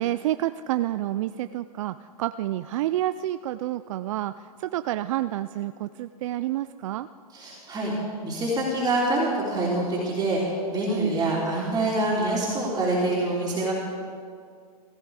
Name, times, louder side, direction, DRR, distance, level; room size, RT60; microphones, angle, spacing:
voice 1, 0.0-4.3 4.6-7.1 10.9-11.2, right 14 dB, 55° right, 12 dB, 0.4 m, -29 dB
voice 2, 7.3-7.9 8.2-13.7, right 2 dB, 20° right, -6 dB, 3.3 m, -25 dB
16.0 x 14.0 x 4.9 m, 2.1 s
hypercardioid pair, 115°, 19 cm